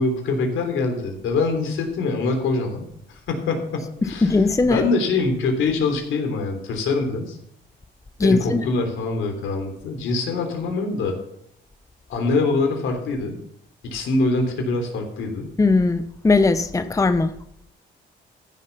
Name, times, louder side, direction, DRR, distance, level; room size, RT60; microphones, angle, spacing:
voice 1, 0.0-4.3 4.6-7.4 8.2-11.2 12.1-13.4 13.8-15.5, left 3 dB, 80° left, 4 dB, 3.4 m, -24 dB
voice 2, 4.0-4.9 8.2-8.6 15.6-17.3, left 3 dB, 15° left, 11 dB, 0.8 m, -19 dB
14.5 x 7.3 x 5.7 m, 0.73 s
cardioid pair, 90°, 20 cm